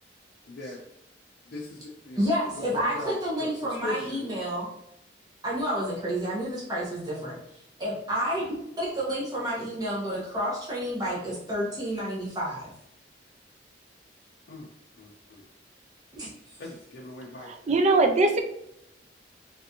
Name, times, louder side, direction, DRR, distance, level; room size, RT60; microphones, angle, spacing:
voice 1, 0.5-0.8 1.5-2.3 2.6-3.1 3.4-3.5 3.8-4.3 14.5-14.7 15.0-15.4 16.6-17.5, left 2 dB, 55° left, -2 dB, 0.5 m, -38 dB
voice 2, 2.2-4.7 5.4-7.4 7.8-8.4 8.8-12.7 16.1-16.3, equal, 20° right, -7 dB, 0.8 m, -30 dB
voice 3, 17.4-18.4, right 2 dB, 40° right, 6 dB, 0.4 m, -22 dB
3.3 x 2.6 x 2.7 m, 0.79 s
head